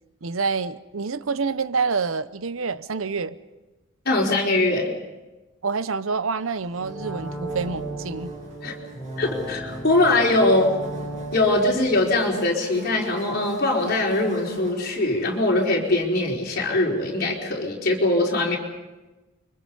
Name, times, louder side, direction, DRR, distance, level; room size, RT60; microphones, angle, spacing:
voice 1, 0.2-3.4 5.6-8.3, right 4 dB, 80° right, 15 dB, 0.8 m, -27 dB
voice 2, 4.0-4.9 8.6-8.7 9.2-10.7 11.3-18.6, left 2 dB, 50° left, -2 dB, 4.5 m, -22 dB
sound 1, 6.7-13.5 13.9-14.0, right 1 dB, 5° right, 4.3 m, -36 dB
Buzz, 6.7-17.2, equal, 35° right, 6.6 m, -42 dB
29.5 x 24.5 x 5.5 m, 1.1 s
head